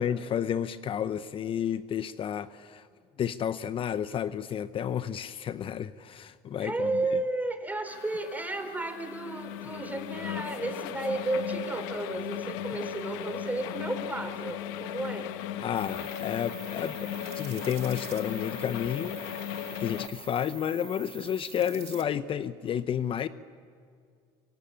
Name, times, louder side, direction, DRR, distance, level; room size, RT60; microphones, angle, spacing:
voice 1, 0.0-2.8 3.2-6.9 15.6-19.2 19.8-23.3, left 9 dB, 40° left, 13 dB, 0.9 m, -31 dB
voice 2, 6.6-15.3, right 2 dB, 10° right, 7 dB, 4.2 m, -33 dB
sound 1, 7.9-20.1, left 11 dB, 75° left, 1.4 m, -37 dB
sound 2, 15.7-22.0, right 11 dB, 50° right, 2.3 m, -46 dB
25.0 x 24.5 x 8.9 m, 2.1 s
supercardioid pair, 85°, 13 cm